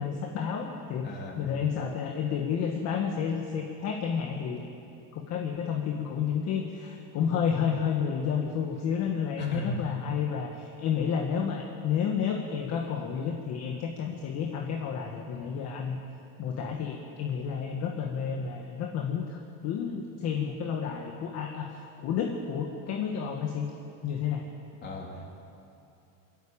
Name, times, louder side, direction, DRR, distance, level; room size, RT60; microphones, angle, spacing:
voice 1, 0.0-1.1 1.3-4.7 5.1-16.0 16.4-23.7 24.0-24.4, left 7 dB, 45° left, 2 dB, 1.6 m, -31 dB
voice 2, 1.0-1.4 9.4-9.8 24.8-25.3, left 1 dB, 30° left, 0 dB, 3.3 m, -36 dB
22.5 x 13.5 x 8.8 m, 2.8 s
cardioid pair, 155°, 36 cm